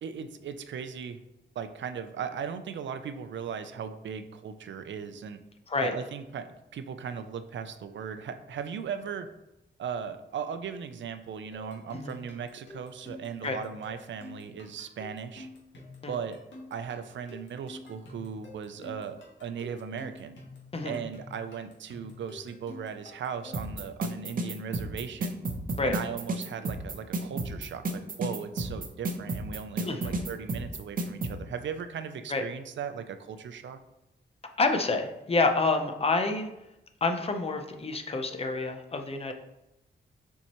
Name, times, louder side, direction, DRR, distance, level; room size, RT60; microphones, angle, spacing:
voice 1, 0.0-1.2 1.6-5.4 5.8-9.3 9.8-15.5 16.1-16.4 16.7-20.4 20.8-25.4 25.8-33.8, right 7 dB, 80° right, 9 dB, 0.5 m, -37 dB
sound 1, 11.5-23.8, left 2 dB, 75° left, 1.7 m, -48 dB
sound 2, 23.5-31.3, right 2 dB, 45° right, 0.7 m, -31 dB
voice 2, 29.8-30.2 32.3-32.4 34.6-36.5 37.0-39.3, left 3 dB, 30° left, 5 dB, 0.6 m, -28 dB
7.0 x 4.6 x 3.0 m, 0.91 s
wide cardioid pair, 155°, 19 cm